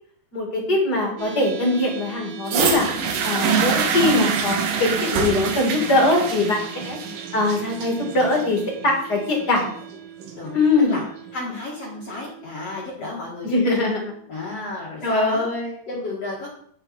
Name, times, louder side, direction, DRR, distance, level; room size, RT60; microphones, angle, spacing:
voice 1, 0.3-2.9 3.2-7.0 7.3-9.7 10.5-11.0 13.4-14.0 15.0-15.8, left 2 dB, 30° left, 0 dB, 2.5 m, -22 dB
sound 1, 1.2-15.1, right 10 dB, 85° right, 3.7 m, -41 dB
sound 2, 2.5-10.5 11.3-11.4, right 6 dB, 65° right, 2.6 m, -25 dB
voice 2, 11.3-13.8 14.3-15.5 15.9-16.5, left 2 dB, 50° left, -4 dB, 2.2 m, -32 dB
9.5 x 8.6 x 4.4 m, 0.63 s
omnidirectional pair, 4.7 m